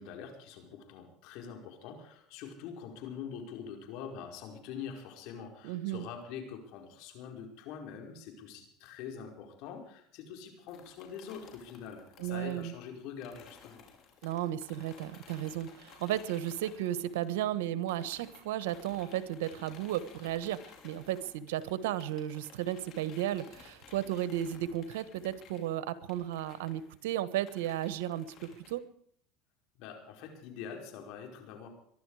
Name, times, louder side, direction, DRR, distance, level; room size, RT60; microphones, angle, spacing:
voice 1, 0.0-13.9 29.8-31.7, left 7 dB, 65° left, 3 dB, 5.0 m, -44 dB
voice 2, 5.6-6.1 12.2-12.7 14.2-28.8, right 12 dB, 85° right, 14 dB, 1.3 m, -34 dB
sound 1, 10.7-17.6 17.9-28.7, left 6 dB, 50° left, 5.5 m, -56 dB
23.0 x 12.0 x 4.9 m, 0.64 s
supercardioid pair, 115°, 0 cm